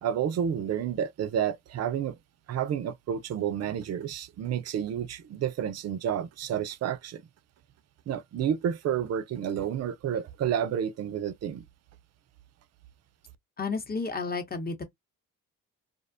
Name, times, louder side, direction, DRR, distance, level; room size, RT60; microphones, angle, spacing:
voice 1, 0.0-2.2 2.5-7.2 8.1-11.6, right 9 dB, 45° right, 0.4 m, -30 dB
voice 2, 13.6-14.8, left 4 dB, 25° left, 0.8 m, -32 dB
2.5 x 2.1 x 2.5 m
supercardioid pair, 65°, 36 cm